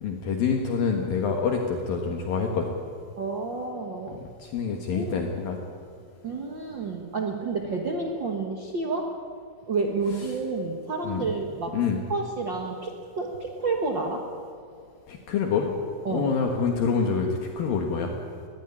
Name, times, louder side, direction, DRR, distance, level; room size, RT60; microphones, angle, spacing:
voice 1, 0.0-2.8 4.4-5.6 11.0-11.2 11.7-12.0 15.1-15.8 16.1-18.1, left 5 dB, 65° left, 2 dB, 3.0 m, -26 dB
voice 2, 3.2-4.2 4.9-5.3 6.2-9.1 9.7-11.8 12.1-14.2 16.0-16.3, right 3 dB, 80° right, 2 dB, 1.0 m, -30 dB
22.0 x 15.5 x 10.0 m, 2.3 s
omnidirectional pair, 4.8 m